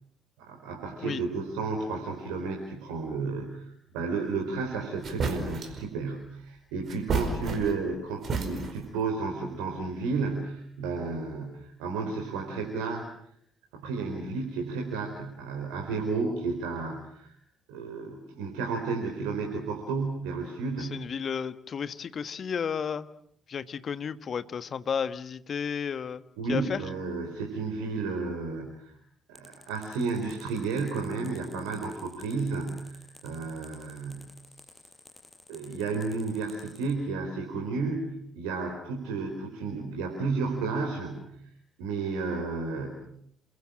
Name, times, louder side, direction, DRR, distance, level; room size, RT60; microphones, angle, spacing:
voice 1, 0.4-13.1 13.7-17.3 17.7-21.0 26.4-29.0 29.3-34.3 35.5-41.3 41.8-43.0, right 4 dB, 70° right, 3 dB, 4.1 m, -32 dB
sound 1, 4.6-4.7 5.0-5.8 6.9-7.9 8.2-8.9, right 4 dB, 45° right, 4.9 m, -31 dB
voice 2, 20.8-23.1 23.5-26.8, left 7 dB, 45° left, 13 dB, 1.4 m, -33 dB
sound 2, 29.4-36.9, left 2 dB, 15° left, 7.3 m, -53 dB
29.0 x 22.5 x 7.5 m, 0.69 s
figure-of-eight pair, 45°, 0 cm